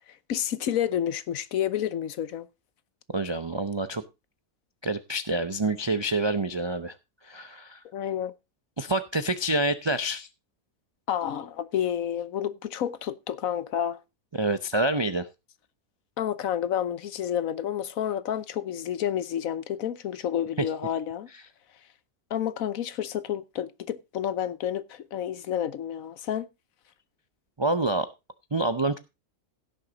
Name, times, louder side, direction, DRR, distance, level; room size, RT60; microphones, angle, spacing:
voice 1, 0.3-2.5 7.9-8.3 11.1-14.0 16.2-21.3 22.3-26.5, left 10 dB, 70° left, 1.2 m, -30 dB
voice 2, 3.1-4.0 4.8-6.9 7.2-7.8 8.8-10.3 14.3-15.3 27.6-28.1 28.5-29.0, right 2 dB, 45° right, 0.3 m, -27 dB
16.5 x 6.6 x 3.9 m
omnidirectional pair, 1.6 m